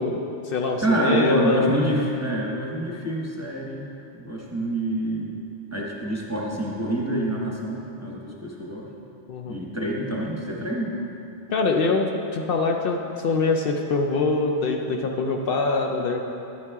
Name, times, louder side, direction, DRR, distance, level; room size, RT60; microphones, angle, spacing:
voice 1, 0.0-1.7 9.3-9.6 11.5-16.2, left 3 dB, 65° left, 2 dB, 0.7 m, -24 dB
voice 2, 0.8-3.9 4.1-5.3 5.7-8.9 9.5-10.9, right 1 dB, 15° right, -3 dB, 0.9 m, -26 dB
10.5 x 8.5 x 3.6 m, 2.9 s
omnidirectional pair, 1.1 m